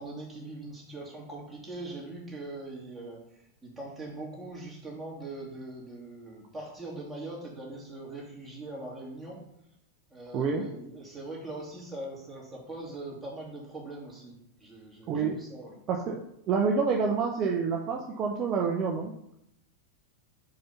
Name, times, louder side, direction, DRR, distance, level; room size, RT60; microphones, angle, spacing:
voice 1, 0.0-9.4 10.1-15.8, right 2 dB, 5° right, -5 dB, 2.6 m, -41 dB
voice 2, 10.3-10.6 15.1-15.4 15.9-19.1, right 5 dB, 35° right, 1 dB, 0.7 m, -28 dB
5.2 x 5.2 x 5.7 m, 0.79 s
figure-of-eight pair, 90°, 0 cm